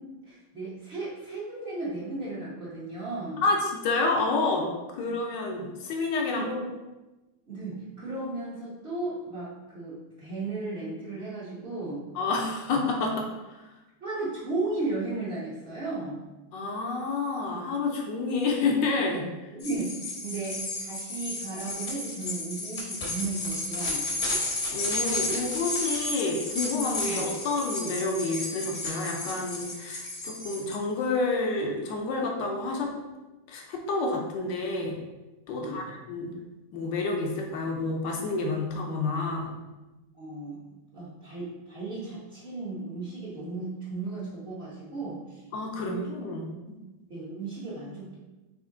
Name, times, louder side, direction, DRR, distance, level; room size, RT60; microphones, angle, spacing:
voice 1, 0.0-3.4 5.1-5.2 6.3-6.7 7.5-12.1 14.0-16.2 19.5-24.1 27.1-27.2 35.6-35.9 40.2-45.4 45.8-46.0 47.1-48.2, right 3 dB, 45° right, -10 dB, 0.8 m, -35 dB
voice 2, 3.4-6.5 12.1-13.6 16.5-19.3 24.7-32.9 33.5-35.0 35.5-36.3 36.7-39.5 45.5-46.8, left 3 dB, 70° left, 1 dB, 1.1 m, -29 dB
sound 1, 19.6-30.8, left 2 dB, 50° left, 0.8 m, -33 dB
4.3 x 3.1 x 3.7 m, 1.1 s
omnidirectional pair, 2.4 m